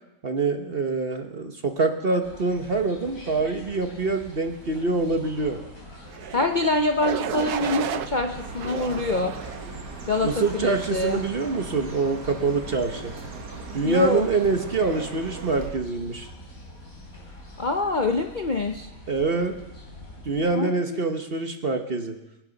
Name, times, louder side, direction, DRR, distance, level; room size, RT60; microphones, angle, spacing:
voice 1, 0.2-5.6 10.2-13.1 13.7-16.3 19.1-19.6 20.2-22.2, right 3 dB, 40° right, 6 dB, 1.2 m, -25 dB
sound 1, 2.2-20.5, left 1 dB, 55° left, 5.0 m, -44 dB
sound 2, 6.1-6.5 7.0-8.1 8.6-9.6 10.2-10.6, right 9 dB, 70° right, 1.2 m, -32 dB
voice 2, 6.3-9.3 10.1-11.2 13.8-14.3 17.6-18.9 20.5-21.0, left 2 dB, 40° left, 4 dB, 0.7 m, -25 dB
Chirp tweet, 7.9-15.7, right 3 dB, 85° right, 2.3 m, -39 dB
26.5 x 11.5 x 4.0 m, 0.96 s
omnidirectional pair, 1.8 m